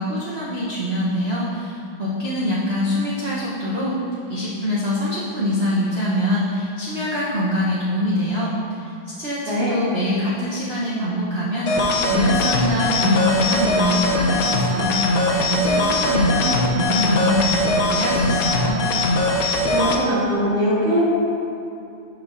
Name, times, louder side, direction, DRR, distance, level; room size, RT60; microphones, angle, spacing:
voice 1, 0.0-4.0 4.3-8.9 9.2-18.8, equal, 85° right, -8 dB, 0.5 m, -24 dB
voice 2, 9.5-9.8 19.7-21.0, equal, 55° right, -7 dB, 2.1 m, -21 dB
sound 1, 11.7-20.0, left 2 dB, 75° left, 0.8 m, -20 dB
11.5 x 4.6 x 2.5 m, 2.7 s
omnidirectional pair, 2.4 m